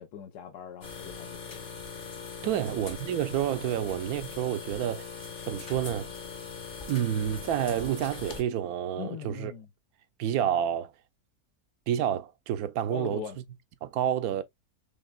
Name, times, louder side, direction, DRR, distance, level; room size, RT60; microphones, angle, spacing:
voice 1, 0.0-1.6 2.4-2.6 3.7-3.8 8.9-9.7 12.9-13.4, left 8 dB, 90° left, 1.3 m, -41 dB
sound 1, 0.8-8.4, left 5 dB, 40° left, 0.9 m, -41 dB
voice 2, 2.4-6.1 6.9-9.5 10.2-10.9 11.9-13.3 13.8-14.4, right 10 dB, 75° right, 1.0 m, -29 dB
5.0 x 3.4 x 2.2 m
omnidirectional pair, 1.7 m